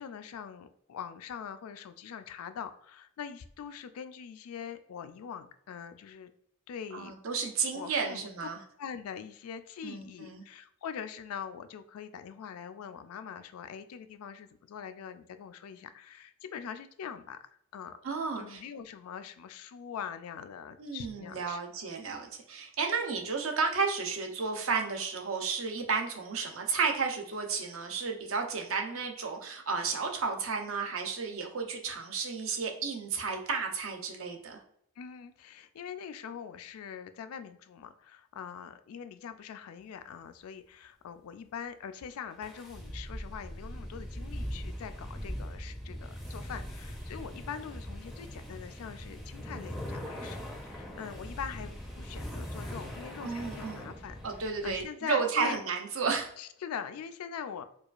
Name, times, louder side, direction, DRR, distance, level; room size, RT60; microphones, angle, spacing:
voice 1, 0.0-6.3 6.7-7.1 7.7-8.3 8.8-18.0 18.4-21.6 35.0-50.4 50.6-54.2 54.6-55.6 56.4-57.6, left 7 dB, 80° left, 10 dB, 0.3 m, -43 dB
voice 2, 6.9-8.6 9.8-10.4 18.0-18.6 20.8-34.6 53.2-53.9 54.2-56.3, right 5 dB, 65° right, 3 dB, 0.6 m, -32 dB
sound 1, 42.4-54.8, equal, ahead, 0.4 m, -41 dB
4.6 x 2.3 x 2.4 m, 0.70 s
head